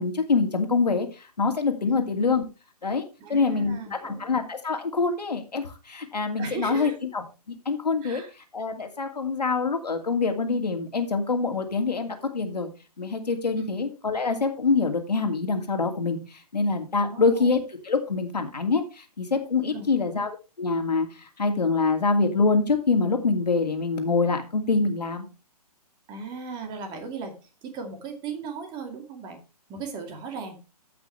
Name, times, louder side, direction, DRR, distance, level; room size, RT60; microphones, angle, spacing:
voice 1, 0.0-2.4 2.8-8.2 8.5-12.7 13.0-25.3, left 4 dB, 80° left, 4 dB, 2.6 m, -25 dB
voice 2, 3.2-4.2 6.4-7.0 8.0-8.3 13.6-13.8 17.1-17.5 19.7-19.9 26.1-29.4 29.7-30.6, right 5 dB, 20° right, 5 dB, 2.3 m, -37 dB
15.0 x 6.0 x 3.3 m, 0.30 s
figure-of-eight pair, 135°, 21 cm